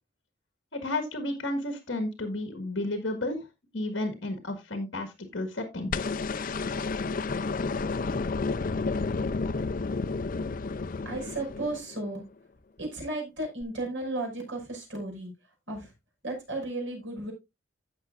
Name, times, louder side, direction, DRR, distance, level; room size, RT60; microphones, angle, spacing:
voice 1, 0.7-3.5 3.7-5.9, left 1 dB, 65° left, 6 dB, 1.6 m, -32 dB
sound 1, 5.9-12.1 13.6-13.7, left 4 dB, 45° left, 0.5 m, -31 dB
voice 2, 10.7-12.2 12.8-15.3 15.7-15.9 16.2-17.3, right 2 dB, 80° right, 1 dB, 5.6 m, -34 dB
16.0 x 5.9 x 2.5 m, 0.22 s
head